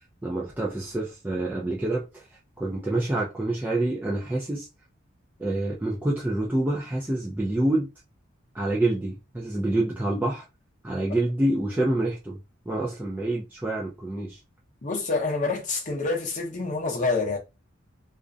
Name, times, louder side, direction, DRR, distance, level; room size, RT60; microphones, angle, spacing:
voice 1, 0.2-2.3 2.6-4.7 5.4-7.9 8.5-10.4 10.8-12.4 12.7-14.4, right 1 dB, 10° right, 0.4 m, -27 dB
voice 2, 14.8-17.4, left 3 dB, 40° left, 0.7 m, -27 dB
2.4 x 2.1 x 2.4 m
head